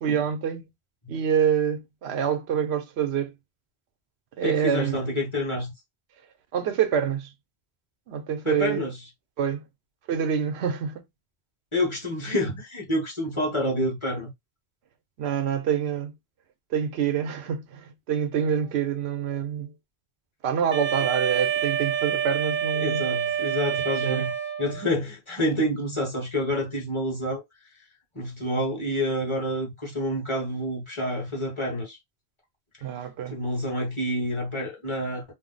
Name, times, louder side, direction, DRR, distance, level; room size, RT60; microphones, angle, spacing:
voice 1, 0.0-0.6 1.1-3.3 4.4-5.0 6.5-7.3 8.1-8.8 9.4-9.6 10.1-11.0 15.2-16.1 16.7-19.7 20.4-23.1 23.8-24.2 32.8-33.4, right 8 dB, 90° right, 0.9 m, -26 dB
voice 2, 4.4-5.7 8.4-9.0 11.7-14.3 22.8-24.3 24.6-27.4 28.1-32.0 33.3-35.2, left 1 dB, 30° left, 1.1 m, -28 dB
Wind instrument woodwind instrument, 20.7-24.9, right 9 dB, 55° right, 0.7 m, -27 dB
2.6 x 2.0 x 3.8 m
omnidirectional pair, 1.1 m